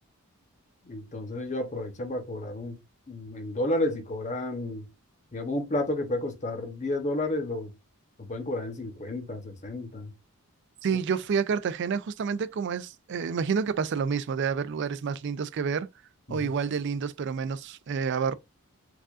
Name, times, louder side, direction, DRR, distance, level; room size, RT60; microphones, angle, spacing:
voice 1, 0.8-2.8 3.1-4.9 5.3-7.7 8.2-10.1 16.3-16.5, left 1 dB, 35° left, 0.9 m, -31 dB
voice 2, 10.8-15.9 16.3-18.4, right 6 dB, 55° right, 0.3 m, -29 dB
4.8 x 2.4 x 2.4 m
head